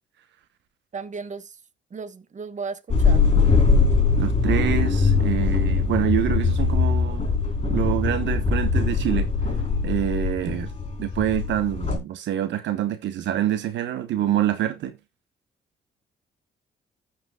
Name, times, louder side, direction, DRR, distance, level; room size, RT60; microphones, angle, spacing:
voice 1, 0.9-1.6 1.9-3.2, right 5 dB, 40° right, 1.3 m, -35 dB
sound 1, 2.9-12.0, left 4 dB, 30° left, 4.0 m, -21 dB
voice 2, 4.2-7.3 7.7-9.3 9.8-10.7 11.0-14.9, right 11 dB, 75° right, 1.0 m, -26 dB
15.0 x 5.9 x 2.3 m
supercardioid pair, 65°, 19 cm